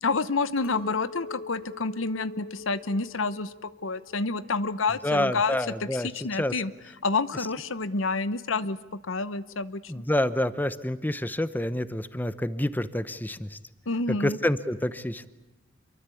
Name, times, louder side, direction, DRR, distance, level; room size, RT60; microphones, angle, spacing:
voice 1, 0.0-6.7 7.0-8.8 9.0-10.0 13.9-14.4, left 3 dB, 80° left, 16 dB, 1.0 m, -29 dB
Chink clink, 0.6-5.0 5.3-5.9, left 2 dB, 50° left, 5.1 m, -45 dB
voice 2, 5.0-6.1 6.4-6.5 9.9-13.6 14.1-15.3, left 1 dB, 10° left, 14 dB, 0.8 m, -28 dB
26.5 x 23.5 x 8.4 m, 0.99 s
head